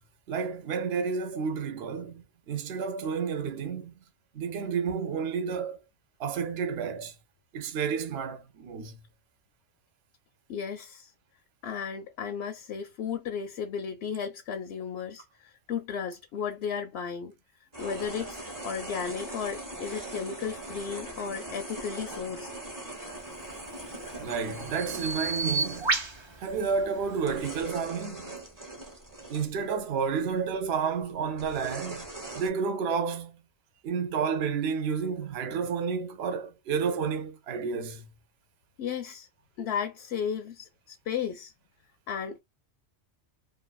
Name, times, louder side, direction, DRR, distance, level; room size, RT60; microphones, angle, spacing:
voice 1, 0.3-4.0 4.3-5.8 6.2-7.1 7.5-9.0 24.2-26.0 26.4-28.4 29.3-32.1 32.4-33.4 33.8-38.1, right 6 dB, 60° right, 0.9 m, -31 dB
voice 2, 10.5-11.1 11.6-17.3 17.8-22.5 38.8-39.3 39.6-41.5 42.1-42.4, left 7 dB, 70° left, 0.8 m, -34 dB
sound 1, 17.7-25.9 26.6-26.9 27.3-29.5 30.5-30.6 31.4-32.5, right 2 dB, 20° right, 0.9 m, -40 dB
Bird vocalization bird call bird song, 23.4-27.6, right 3 dB, 35° right, 0.5 m, -34 dB
2.5 x 2.5 x 2.2 m
omnidirectional pair, 1.2 m